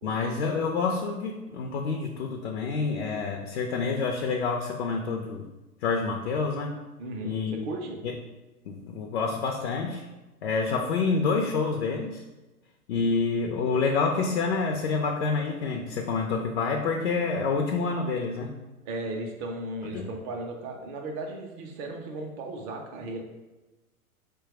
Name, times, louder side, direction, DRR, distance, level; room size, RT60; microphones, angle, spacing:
voice 1, 0.0-5.5 5.8-6.8 7.2-7.7 8.0-8.1 8.7-10.1 10.4-12.2 12.9-18.6 19.9-20.1, left 4 dB, 50° left, 2 dB, 0.5 m, -28 dB
voice 2, 7.0-8.0 18.8-23.2, right 2 dB, 25° right, 2 dB, 0.5 m, -36 dB
4.4 x 2.3 x 4.7 m, 1.1 s
figure-of-eight pair, 105°, 44 cm